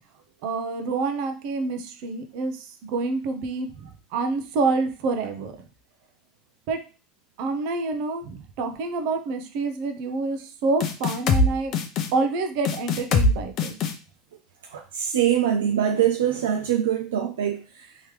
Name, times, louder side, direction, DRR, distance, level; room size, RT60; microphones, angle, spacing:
voice 1, 0.4-3.7 4.1-5.6 6.7-6.8 7.4-11.7 12.1-13.8, right 3 dB, 65° right, 0.8 m, -27 dB
sound 1, 10.8-11.5 11.7-12.1 12.6-13.3 13.6-13.9, left 3 dB, 50° left, 0.7 m, -21 dB
voice 2, 14.7-17.9, right 10 dB, 90° right, 0.4 m, -23 dB
3.6 x 3.2 x 3.2 m
supercardioid pair, 100°, 0 cm